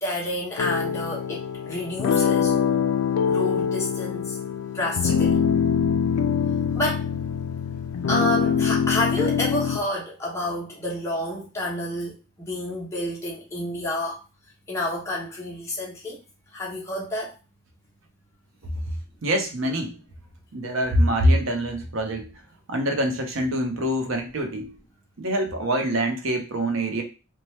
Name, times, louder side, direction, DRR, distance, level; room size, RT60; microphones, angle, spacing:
voice 1, 0.0-2.5 3.2-4.4 4.7-5.4 6.7-7.1 8.1-14.2 14.7-16.2 16.5-17.3, left 1 dB, 15° left, -4 dB, 0.8 m, -29 dB
sound 1, 0.6-9.8, left 7 dB, 85° left, 0.3 m, -24 dB
voice 2, 19.2-19.9 20.5-22.3 22.7-24.7 25.2-27.0, equal, 65° right, 4 dB, 0.6 m, -24 dB
2.9 x 2.2 x 3.1 m, 0.30 s
head